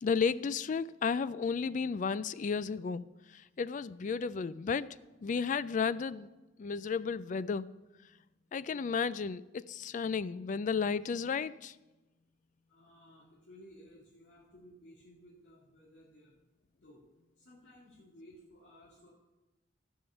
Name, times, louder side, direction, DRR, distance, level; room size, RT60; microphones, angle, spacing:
voice 1, 0.0-3.1 3.3-4.9 5.2-6.3 6.6-7.7 8.5-11.7, left 5 dB, 45° left, 17 dB, 0.3 m, -33 dB
voice 2, 12.7-16.3 16.8-17.0 17.4-19.1, equal, 90° left, -8 dB, 2.4 m, -57 dB
13.5 x 5.6 x 6.9 m, 1.1 s
head